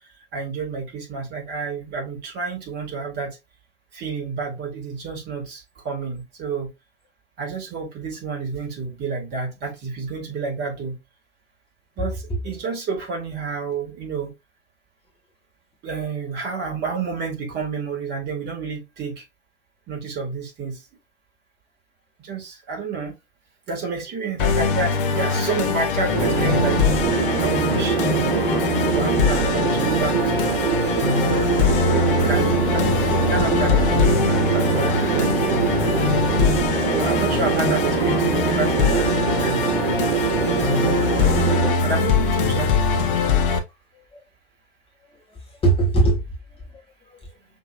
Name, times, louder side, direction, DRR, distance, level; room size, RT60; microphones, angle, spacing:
voice 1, 0.3-3.4 3.9-6.7 7.4-11.0 12.0-14.3 15.8-19.2 19.9-20.8 22.2-23.2 23.7-28.3 28.9-30.5 31.3-31.4 31.8-35.7 36.9-39.7 40.3-41.0 41.8-42.7, right 4 dB, 30° right, 2.2 m, -30 dB
voice 2, 12.0-12.4 44.1-44.2 45.1-46.2 46.5-46.7 47.1-47.3, right 2 dB, 15° left, 1.4 m, -23 dB
Musical instrument, 24.4-43.6, left 6 dB, 50° left, 1.0 m, -22 dB
sound 1, 26.1-41.7, right 9 dB, 60° right, 0.7 m, -23 dB
5.9 x 3.0 x 2.5 m
figure-of-eight pair, 95°, 36 cm